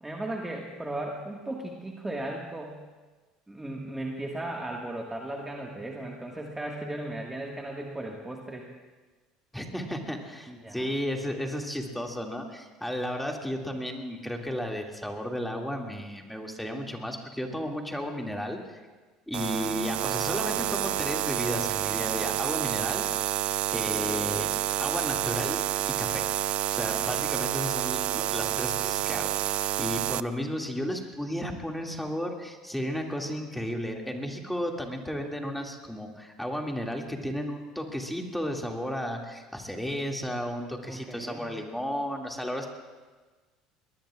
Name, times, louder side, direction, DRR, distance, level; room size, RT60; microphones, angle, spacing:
voice 1, 0.0-2.8 3.5-8.7 10.5-10.9 40.8-41.5, right 1 dB, 10° right, -1 dB, 1.8 m, -36 dB
voice 2, 9.5-18.8 19.3-23.0 23.7-24.5 24.8-25.6 25.9-26.3 26.7-42.7, equal, 5° left, 1 dB, 2.4 m, -33 dB
sound 1, 19.3-30.2, right 13 dB, 55° right, 0.4 m, -29 dB
22.0 x 19.5 x 2.5 m, 1.3 s
hypercardioid pair, 70°, 2 cm